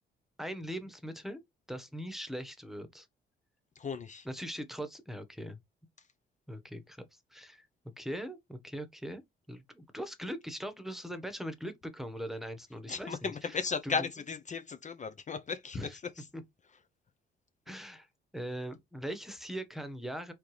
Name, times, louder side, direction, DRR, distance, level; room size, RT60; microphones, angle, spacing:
voice 1, 0.4-1.4 1.7-3.1 4.2-5.6 6.5-7.0 7.3-7.7 8.0-9.2 9.5-13.6 13.8-14.1 15.7-16.0 16.3-16.4 17.7-18.1 18.3-20.3, equal, ahead, 1.2 m, -40 dB
voice 2, 3.8-4.3 12.9-15.8, left 5 dB, 40° left, 0.7 m, -35 dB
4.4 x 3.6 x 3.3 m
cardioid pair, 90°, 20 cm